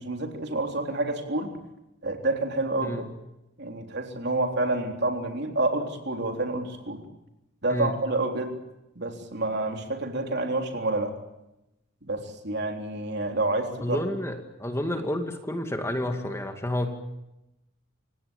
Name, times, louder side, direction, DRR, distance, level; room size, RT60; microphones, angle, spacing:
voice 1, 0.0-1.5 2.0-3.1 3.6-7.0 7.6-8.5 9.0-11.1 12.0-14.0, right 2 dB, 55° right, 4 dB, 3.7 m, -28 dB
voice 2, 13.8-16.9, left 1 dB, 15° left, 5 dB, 2.2 m, -30 dB
29.0 x 17.5 x 8.9 m, 0.90 s
head